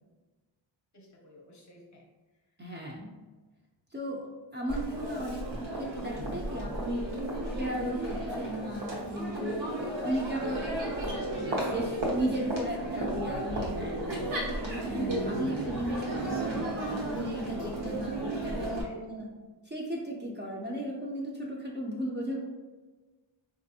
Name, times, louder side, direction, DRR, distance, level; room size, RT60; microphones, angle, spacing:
voice 1, 0.9-2.0 18.2-19.0, left 1 dB, 40° left, -1 dB, 0.6 m, -52 dB
voice 2, 2.6-3.1 3.9-4.3 4.5-7.0 7.5-9.7 10.0-10.7 11.4-14.3 14.9-19.3 19.6-22.4, equal, 25° right, -3 dB, 0.4 m, -35 dB
Crowd, 4.7-18.8, right 1 dB, 80° right, 0.9 m, -34 dB
3.9 x 2.5 x 2.7 m, 1.3 s
wide cardioid pair, 135°, 46 cm